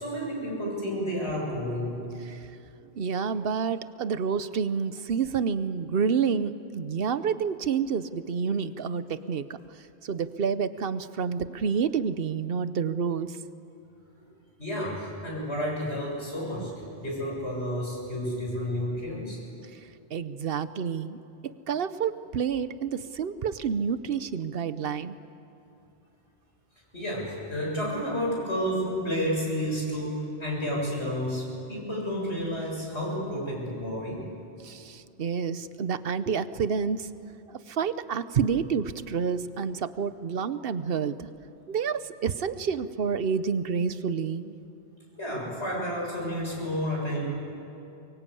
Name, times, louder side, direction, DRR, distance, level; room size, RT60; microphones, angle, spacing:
voice 1, 0.0-2.0 14.6-19.4 26.9-34.2 45.2-47.2, equal, 80° left, -3 dB, 7.4 m, -31 dB
voice 2, 3.0-9.5 10.0-13.4 20.1-25.2 34.6-37.1 37.5-41.3 41.7-44.5, right 6 dB, 60° right, 13 dB, 1.0 m, -29 dB
24.0 x 23.0 x 8.5 m, 2.8 s
omnidirectional pair, 1.1 m